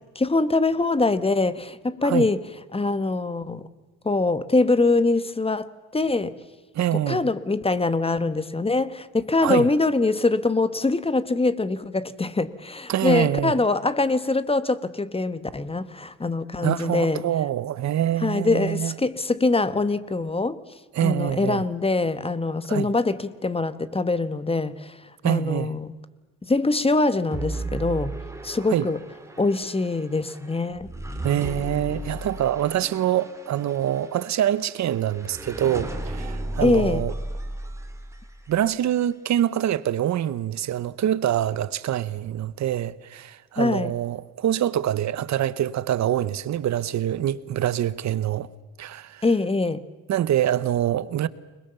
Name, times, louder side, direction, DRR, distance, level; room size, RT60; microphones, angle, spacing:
voice 1, 0.1-2.4 2.7-3.7 4.0-6.3 7.1-17.2 18.2-20.6 21.0-25.0 25.2-25.9 26.4-28.2 28.4-29.0 29.4-30.9 36.6-37.1 43.6-43.9 49.2-49.8, left 3 dB, 20° left, 1.3 m, -23 dB
voice 2, 6.7-7.2 9.4-9.7 12.9-13.6 16.6-18.9 20.9-21.6 22.7-22.9 25.2-25.8 28.7-28.9 31.2-37.1 38.5-48.5 48.8-49.2 50.1-51.3, right 11 dB, 65° right, 1.0 m, -25 dB
sound 1, 27.3-38.6, right 1 dB, 10° right, 3.6 m, -35 dB
29.5 x 21.0 x 6.9 m
cardioid pair, 90°, 30 cm